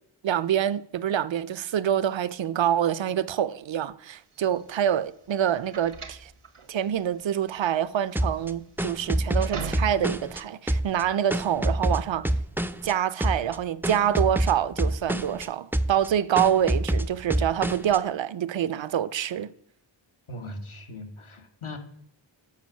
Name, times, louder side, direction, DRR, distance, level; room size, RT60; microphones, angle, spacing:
voice 1, 0.2-6.3 6.7-12.3 12.8-19.5, right 10 dB, 65° right, 0.5 m, -26 dB
sound 1, 4.3-10.3, right 5 dB, 90° right, 1.0 m, -40 dB
sound 2, 8.2-10.4 10.7-12.9 13.2-13.6 13.8-15.5 15.7-16.1 16.4-18.0, right 1 dB, 5° right, 0.3 m, -26 dB
voice 2, 20.3-21.8, left 1 dB, 75° left, 1.2 m, -39 dB
7.2 x 5.2 x 6.2 m
wide cardioid pair, 55°, 49 cm